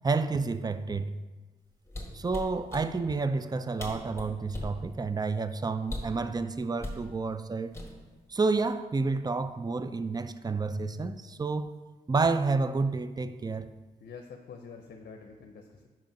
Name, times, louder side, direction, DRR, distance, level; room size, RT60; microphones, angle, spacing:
voice 1, 0.0-1.1 2.1-7.8 8.3-11.8 12.1-13.7, right 4 dB, 20° right, 0.4 m, -30 dB
Laundry Machine Knob Turn, 1.9-2.9 3.5-3.6 3.8-4.8 5.8-6.2 6.8-7.0 7.7-8.2 8.5-8.8, left 1 dB, 15° left, 1.9 m, -38 dB
voice 2, 14.0-15.9, left 5 dB, 65° left, 0.6 m, -46 dB
5.5 x 5.2 x 5.1 m
supercardioid pair, 45°, 18 cm